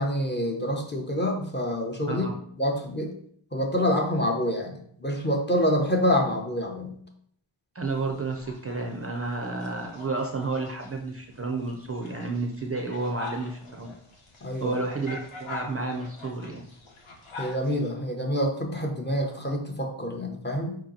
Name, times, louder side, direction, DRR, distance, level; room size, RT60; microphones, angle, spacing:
voice 1, 0.0-2.3 2.6-3.1 3.5-6.9 14.4-14.8 17.4-20.8, equal, 20° left, 1 dB, 0.6 m, -27 dB
voice 2, 7.7-13.9 14.6-16.6, right 3 dB, 30° right, 2 dB, 0.4 m, -31 dB
sound 1, 7.8-17.9, left 3 dB, 80° left, 1.1 m, -45 dB
4.6 x 2.9 x 3.7 m, 0.64 s
wide cardioid pair, 160°, 49 cm